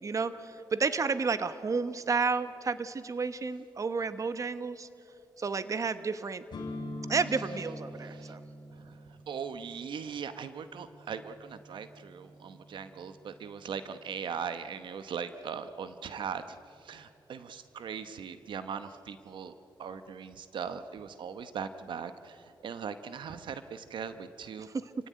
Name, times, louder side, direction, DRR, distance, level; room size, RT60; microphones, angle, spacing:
voice 1, 0.0-4.9 5.4-6.4 7.1-8.4 24.7-24.8, right 4 dB, 40° right, 12 dB, 1.1 m, -31 dB
sound 1, 6.5-14.3, left 1 dB, 65° left, 3.6 m, -46 dB
voice 2, 8.0-8.4 8.7-16.6 16.8-19.5 19.8-24.7, right 7 dB, 75° right, 11 dB, 1.0 m, -40 dB
28.0 x 17.0 x 9.3 m, 2.7 s
cardioid pair, 90°, 8 cm